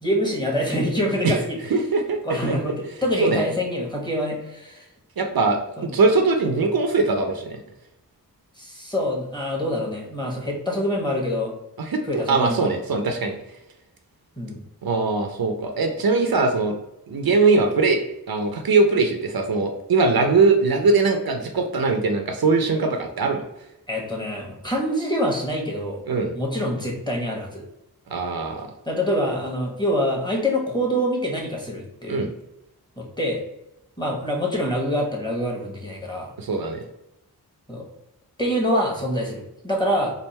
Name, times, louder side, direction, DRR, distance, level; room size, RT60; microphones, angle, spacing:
voice 1, 0.0-1.6 2.2-4.9 5.8-5.9 8.6-11.5 12.1-12.7 14.4-14.6 23.9-26.0 26.3-27.6 28.8-32.2 33.0-33.4 34.0-36.3 37.7-37.9 38.4-40.1, equal, 10° left, -1 dB, 1.2 m, -25 dB
voice 2, 1.7-2.2 3.2-3.4 5.2-7.6 11.8-13.4 14.8-16.7 17.1-18.0 18.3-23.4 26.1-26.3 28.1-28.7 32.1-32.3 36.4-36.8, right 3 dB, 70° right, 4 dB, 0.6 m, -21 dB
3.4 x 2.5 x 4.2 m, 0.86 s
wide cardioid pair, 60°, 38 cm